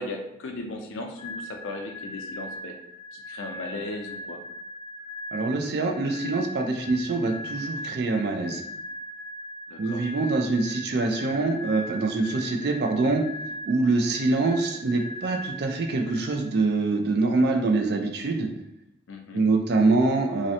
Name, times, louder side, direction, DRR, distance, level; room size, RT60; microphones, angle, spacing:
voice 1, 0.0-2.8 3.1-4.4 9.7-10.1 19.1-19.5, left 2 dB, 85° left, 3 dB, 0.4 m, -37 dB
sound 1, 1.2-16.8, left 1 dB, 30° left, 0.5 m, -39 dB
voice 2, 5.3-8.6 9.8-13.2 13.6-18.5 19.3-20.5, right 3 dB, 55° right, 4 dB, 0.4 m, -24 dB
2.5 x 2.0 x 2.7 m, 0.81 s
head